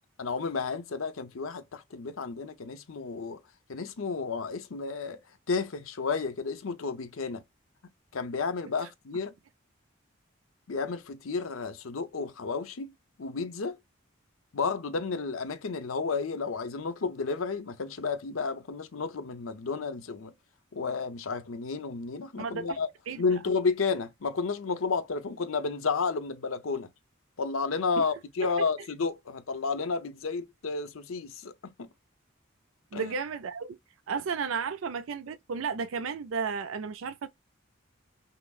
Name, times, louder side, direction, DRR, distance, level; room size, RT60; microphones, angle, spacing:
voice 1, 0.2-3.4 3.7-5.2 5.5-7.4 8.1-9.3 10.7-12.9 13.2-13.8 14.5-20.3 20.7-22.9 23.2-26.9 27.4-31.5 31.8-31.9 32.9-33.1, left 4 dB, 85° left, 0.7 m, -32 dB
voice 2, 22.4-22.8 23.1-23.2 28.0-28.1 28.4-28.7 32.9-33.8 34.1-37.3, right 5 dB, 75° right, 0.4 m, -33 dB
5.7 x 2.0 x 2.3 m
head